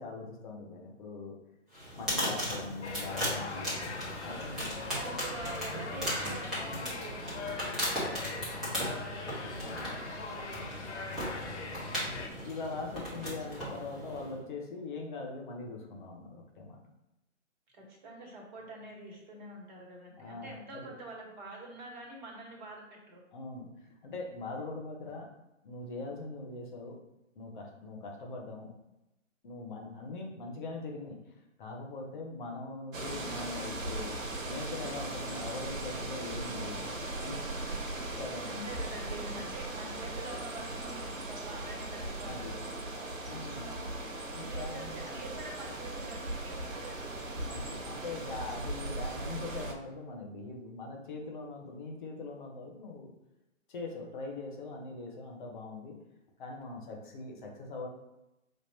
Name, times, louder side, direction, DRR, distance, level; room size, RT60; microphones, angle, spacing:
voice 1, 0.0-1.3 2.0-3.9 4.2-4.7 9.6-9.9 12.0-16.8 20.2-20.9 23.3-23.7 24.0-25.3 25.6-27.0 27.3-28.7 29.4-36.9 37.2-37.5 38.2-38.6 42.2-42.5 42.9-43.7 44.3-44.9 47.5-53.1 53.7-56.0 56.4-57.9, left 3 dB, 40° left, 0 dB, 1.1 m, -42 dB
sound 1, 1.7-14.4, equal, ahead, 1.4 m, -37 dB
sound 2, 2.8-12.3, left 4 dB, 60° left, 0.9 m, -41 dB
voice 2, 4.9-11.6 17.7-23.2 38.4-42.8 43.5-44.0 44.4-47.4, right 2 dB, 35° right, -1 dB, 1.5 m, -46 dB
sound 3, 32.9-49.7, right 2 dB, 80° right, 1.0 m, -38 dB
5.3 x 2.9 x 2.9 m, 0.94 s
figure-of-eight pair, 135°, 39 cm